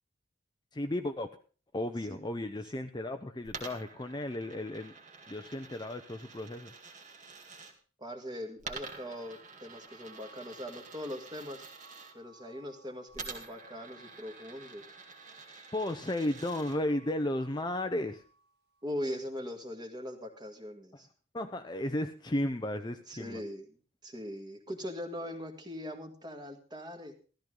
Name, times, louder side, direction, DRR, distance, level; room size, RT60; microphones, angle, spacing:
voice 1, 0.7-1.4 1.7-5.0 5.3-6.7 15.7-18.2 20.9-21.0 21.3-23.4, left 1 dB, 20° left, 7 dB, 0.7 m, -34 dB
Coin (dropping), 3.4-7.7 8.6-12.1 13.1-16.8, right 4 dB, 35° right, 2.1 m, -48 dB
voice 2, 8.0-11.6 12.1-14.8 18.8-21.1 23.1-23.7 24.0-27.1, equal, 20° right, 5 dB, 2.0 m, -41 dB
sound 1, 9.9-19.1, right 2 dB, 55° right, 2.8 m, -62 dB
14.0 x 13.5 x 3.8 m, 0.39 s
head